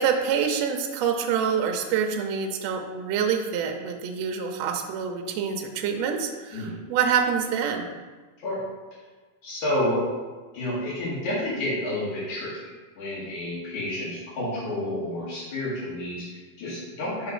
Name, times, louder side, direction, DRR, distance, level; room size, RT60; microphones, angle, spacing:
voice 1, 0.0-7.9, right 7 dB, 80° right, 4 dB, 1.5 m, -26 dB
voice 2, 9.4-10.1 10.5-12.5 13.0-17.3, left 1 dB, 70° left, -8 dB, 3.4 m, -30 dB
6.0 x 3.8 x 4.9 m, 1.3 s
omnidirectional pair, 3.6 m